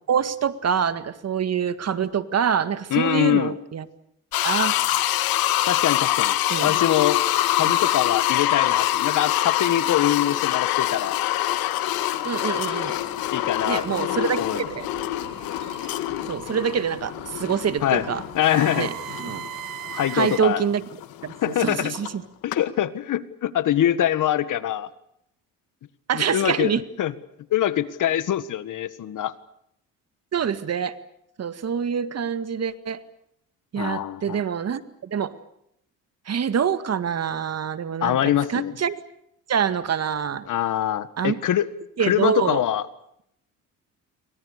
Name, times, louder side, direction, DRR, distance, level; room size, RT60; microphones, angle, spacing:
voice 1, 0.1-3.8 4.4-4.7 6.5-6.7 7.6-7.7 12.2-13.0 13.7-14.9 16.3-18.2 18.8-18.9 19.2-19.4 20.1-20.8 21.2-21.3 21.6-22.1 26.1-26.8 30.3-31.0 31.4-33.0 33.7-35.3 36.3-38.2 38.5-39.0 39.5-40.5 41.2-41.4 42.0-42.6, right 7 dB, 45° right, 12 dB, 1.9 m, -25 dB
voice 2, 2.9-3.6 5.7-7.2 7.5-11.2 13.3-14.7 17.8-18.0 18.3-18.9 19.9-20.6 21.4-21.9 22.4-24.9 26.1-27.1 27.5-29.3 33.8-34.4 38.0-38.7 40.5-41.7 42.0-42.9, left 11 dB, 60° left, 14 dB, 1.7 m, -24 dB
sound 1, 4.3-22.1 22.5-22.6, left 14 dB, 80° left, 2.0 m, -25 dB
sound 2, 12.5-20.4, right 13 dB, 75° right, 1.7 m, -40 dB
28.5 x 24.5 x 6.7 m, 0.76 s
supercardioid pair, 85°, 36 cm